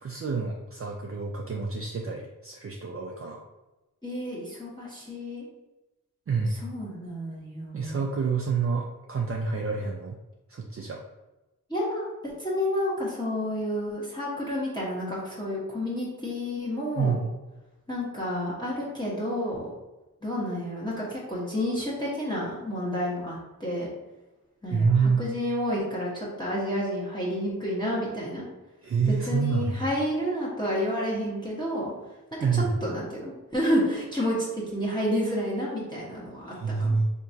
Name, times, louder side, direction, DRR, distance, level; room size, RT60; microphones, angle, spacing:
voice 1, 0.0-3.4 6.3-6.5 7.7-10.2 10.5-11.0 17.0-17.3 24.7-25.2 28.8-29.7 32.4-32.7 36.5-37.1, right 5 dB, 40° right, 0 dB, 0.4 m, -27 dB
voice 2, 4.0-5.4 6.5-8.0 11.7-17.1 17.9-19.7 20.2-23.9 24.6-28.4 29.1-31.9 32.5-37.0, equal, 15° left, -7 dB, 1.2 m, -30 dB
3.5 x 2.9 x 2.7 m, 1.0 s
cardioid pair, 45°, 34 cm